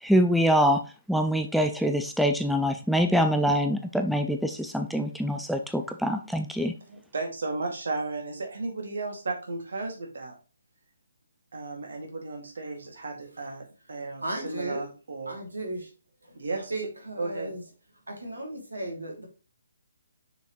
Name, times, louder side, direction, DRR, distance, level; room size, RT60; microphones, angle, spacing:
voice 1, 0.0-6.7, equal, ahead, 5 dB, 0.4 m, -24 dB
voice 2, 6.9-10.3 11.5-13.6 13.9-15.4 16.3-16.7 17.2-17.5, right 3 dB, 60° right, 2 dB, 2.3 m, -34 dB
voice 3, 14.2-14.8 15.3-15.9 16.2-17.6 18.1-19.2, right 1 dB, 80° right, 0 dB, 2.9 m, -35 dB
6.5 x 4.9 x 3.1 m, 0.34 s
figure-of-eight pair, 140°, 0 cm